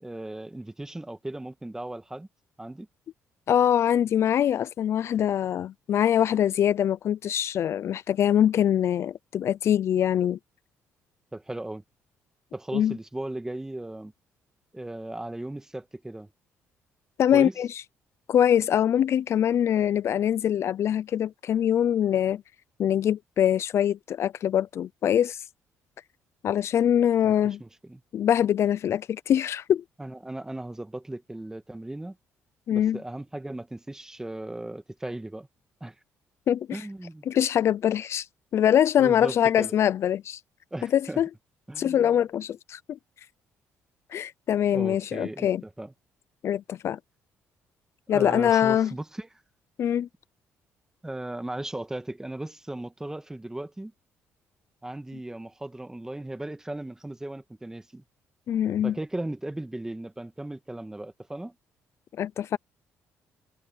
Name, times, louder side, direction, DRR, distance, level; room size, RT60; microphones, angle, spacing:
voice 1, 0.0-2.3 2.6-2.9 11.3-11.8 12.5-14.1 14.7-16.3 17.3-17.5 27.2-27.3 27.6-28.0 30.0-32.2 32.7-35.5 35.8-36.0 36.7-37.3 39.0-39.7 40.7-41.2 41.7-42.1 44.7-45.9 48.1-49.3 51.0-53.9 54.8-58.0 58.8-61.5, right 1 dB, 10° right, 1.7 m, -36 dB
voice 2, 3.5-10.4 12.7-13.0 17.2-17.8 18.3-22.4 22.8-25.4 26.4-27.6 28.1-29.8 32.7-33.0 36.5-36.8 37.3-38.3 38.5-40.4 40.9-41.3 41.8-43.0 44.1-45.6 46.4-47.0 48.1-48.9 49.8-50.1 58.5-58.9 62.2-62.6, left 10 dB, 60° left, 0.5 m, -23 dB
cardioid pair, 85°, 5 cm